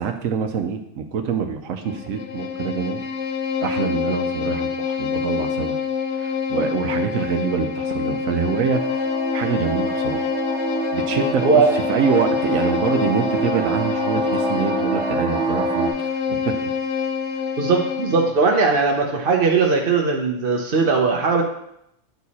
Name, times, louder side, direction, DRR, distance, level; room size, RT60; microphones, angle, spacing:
voice 1, 0.0-3.0 3.6-5.8 6.1-9.1 9.3-10.3 10.9-16.8, right 6 dB, 80° right, 6 dB, 1.1 m, -25 dB
Bowed string instrument, 1.8-18.4, left 6 dB, 65° left, 0.9 m, -26 dB
Clang Cinematic Reversed, 8.7-15.9, right 3 dB, 25° right, 1.0 m, -27 dB
voice 2, 11.4-11.7 17.6-21.4, right 4 dB, 50° right, 1 dB, 0.9 m, -19 dB
9.1 x 4.7 x 4.1 m, 0.77 s
omnidirectional pair, 1.4 m